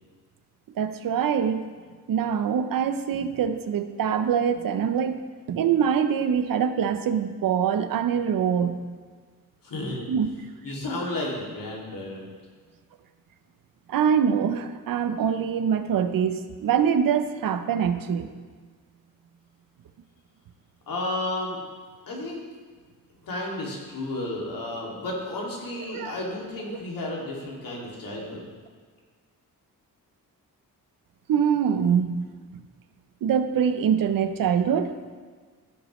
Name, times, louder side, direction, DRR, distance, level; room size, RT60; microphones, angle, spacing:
voice 1, 0.8-1.7 2.1-5.2 5.5-8.9 10.1-10.3 13.9-18.3 25.9-26.2 26.7-26.8 31.3-32.2 32.5-32.6 33.2-34.9, right 7 dB, 70° right, 10 dB, 0.7 m, -24 dB
voice 2, 9.6-10.1 10.6-12.3 20.9-21.6 22.1-22.4 23.2-28.4, left 2 dB, 65° left, -3 dB, 2.4 m, -32 dB
14.5 x 6.1 x 3.1 m, 1.5 s
cardioid pair, 115°, 35 cm